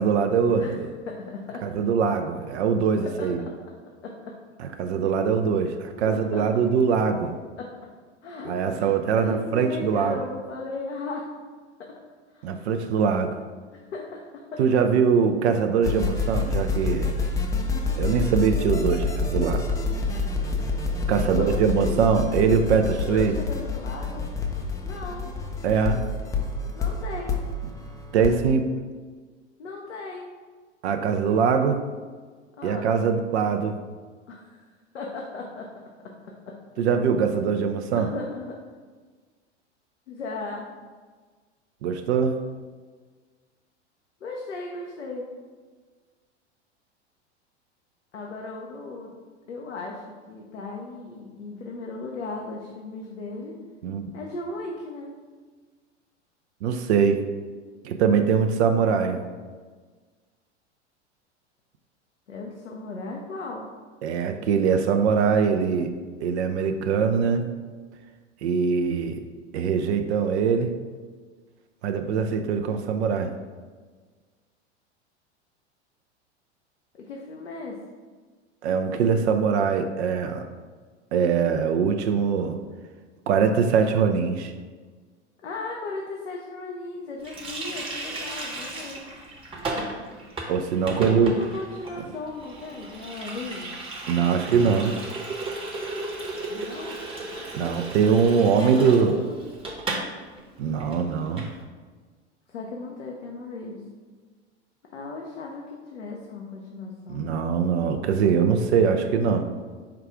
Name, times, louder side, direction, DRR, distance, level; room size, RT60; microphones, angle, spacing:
voice 1, 0.0-0.7 1.6-3.4 4.6-7.3 8.5-10.2 12.4-13.4 14.6-17.1 18.0-19.7 21.1-23.3 25.6-26.0 28.1-28.7 30.8-31.8 32.6-33.8 36.8-38.1 41.8-42.4 53.8-54.0 56.6-57.2 57.8-59.2 64.0-65.9 66.2-67.4 68.4-69.2 69.5-70.7 71.8-73.3 78.6-80.4 81.1-82.6 83.3-84.5 90.5-91.3 94.1-95.0 97.5-99.2 100.6-101.4 107.1-109.4, right 6 dB, 70° right, 6 dB, 0.5 m, -22 dB
voice 2, 0.6-1.9 3.2-3.6 4.0-4.4 6.1-6.5 7.6-7.8 8.2-11.3 11.8-12.0 12.3-12.7 13.0-13.1 13.7-14.6 21.2-22.0 23.1-24.3 24.8-25.3 26.7-27.4 29.6-30.3 32.6-32.9 34.3-34.6 34.9-35.7 36.0-36.6 37.9-38.6 40.1-40.7 44.2-45.3 48.1-49.1 49.5-53.6 54.1-55.1 62.3-63.7 76.9-77.8 85.4-89.2 91.0-93.8 96.5-97.0 98.5-99.5 102.5-103.8 104.9-107.3, left 3 dB, 85° left, -1 dB, 0.7 m, -36 dB
sound 1, 15.8-28.3, left 3 dB, 10° left, 0.3 m, -28 dB
Water tap faucet, 87.2-100.1 100.4-100.5 100.8-101.5, right 2 dB, 15° right, 0.8 m, -35 dB
4.7 x 2.3 x 4.8 m, 1.5 s
hypercardioid pair, 95°, 35 cm